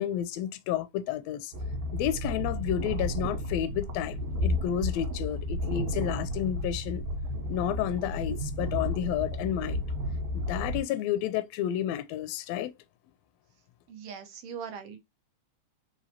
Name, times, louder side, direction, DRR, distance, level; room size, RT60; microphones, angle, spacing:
voice 1, 0.0-1.5 1.9-7.0 7.5-9.8 10.3-12.7, left 11 dB, 80° left, 1.5 m, -31 dB
sound 1, 1.5-10.8, left 1 dB, 90° right, 2.3 m, -32 dB
voice 2, 13.9-15.0, right 7 dB, 65° right, 1.7 m, -40 dB
5.0 x 3.0 x 2.7 m
omnidirectional pair, 3.3 m